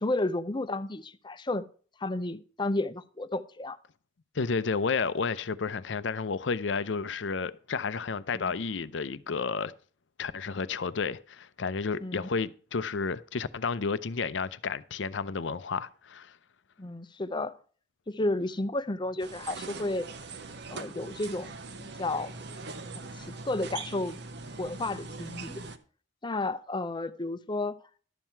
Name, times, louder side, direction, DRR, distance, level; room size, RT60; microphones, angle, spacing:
voice 1, 0.0-1.6 2.0-3.8 8.3-8.5 12.0-12.3 16.8-17.5 18.1-20.1 20.7-22.3 22.9-24.2 24.6-25.6 26.2-27.8, left 2 dB, 25° left, 0.6 m, -32 dB
voice 2, 4.3-9.7 10.2-16.3, left 5 dB, 70° left, 0.6 m, -31 dB
sound 1, 19.2-25.8, right 3 dB, 65° right, 1.0 m, -41 dB
12.0 x 7.4 x 4.5 m
head